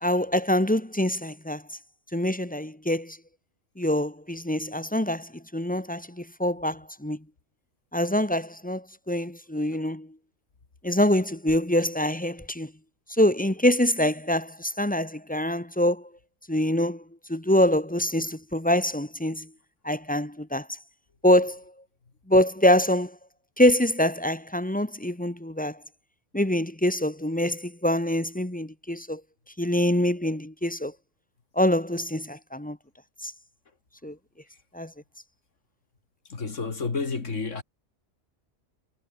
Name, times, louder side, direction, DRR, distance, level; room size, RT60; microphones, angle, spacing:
voice 1, 0.0-1.6 2.1-3.2 3.8-7.2 7.9-10.1 10.8-12.7 13.2-16.1 16.5-17.0 17.3-19.5 19.8-20.8 21.2-21.6 22.3-23.1 23.6-25.8 26.3-29.2 29.6-30.9 31.6-32.8 33.2-33.3 34.0-34.1 34.7-34.9, left 1 dB, 5° left, 1.2 m, -25 dB
voice 2, 36.3-37.6, left 4 dB, 90° left, 2.7 m, -30 dB
omnidirectional pair, 1.2 m